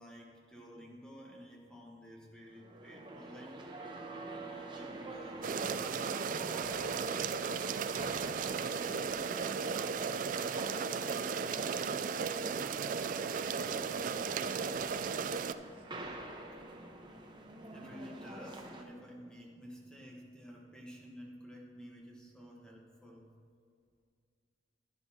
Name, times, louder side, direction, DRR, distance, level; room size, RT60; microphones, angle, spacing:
voice 1, 0.0-4.1 4.4-7.1 17.7-23.3, equal, 5° left, -2 dB, 1.1 m, -52 dB
sound 1, 2.5-18.8, right 2 dB, 25° right, 0.9 m, -47 dB
sound 2, 5.4-15.5, right 6 dB, 50° right, 0.3 m, -35 dB
voice 2, 7.8-7.9, right 1 dB, 65° right, -3 dB, 2.0 m, -58 dB
11.5 x 10.5 x 2.8 m, 2.2 s
head